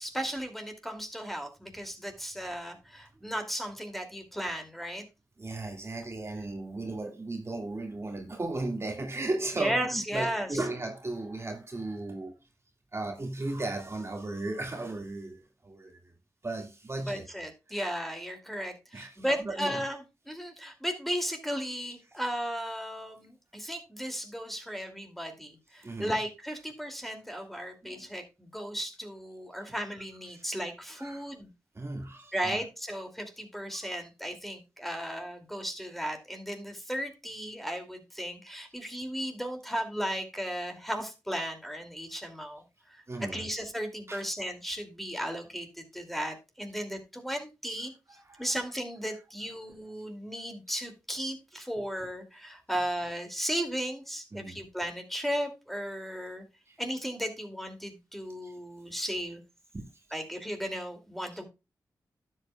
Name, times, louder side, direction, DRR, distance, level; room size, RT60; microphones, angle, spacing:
voice 1, 0.0-5.0 9.6-10.6 17.1-20.0 20.3-31.5 32.3-42.6 42.9-47.9 48.4-56.4 56.8-59.4 60.1-61.4, equal, ahead, 2.5 m, -35 dB
voice 2, 5.4-12.3 12.9-16.1 16.4-17.3 17.7-17.8 18.9-19.8 22.1-22.2 25.8-26.1 27.8-28.1 30.3-30.4 31.0-31.2 31.8-32.6 33.8-33.9 43.1-43.5 44.1-44.2 48.1-48.6 54.3-54.6 56.7-56.8 58.4-58.5 59.7-59.8 60.1-60.2 61.3-61.4, right 2 dB, 35° right, 2.0 m, -36 dB
12.0 x 8.1 x 2.3 m
cardioid pair, 50°, 7 cm